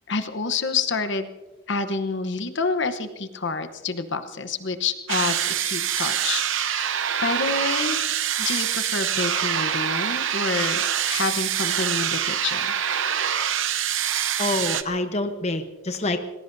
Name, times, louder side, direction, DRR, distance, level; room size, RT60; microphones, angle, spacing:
voice 1, 0.1-1.3 1.7-6.9 7.2-8.0 8.4-12.7, left 4 dB, 55° left, 9 dB, 0.9 m, -28 dB
sound 1, 5.1-14.8, right 9 dB, 65° right, 0.8 m, -25 dB
voice 2, 14.4-16.2, left 2 dB, 30° left, 7 dB, 0.9 m, -26 dB
27.0 x 20.0 x 2.7 m, 1.2 s
head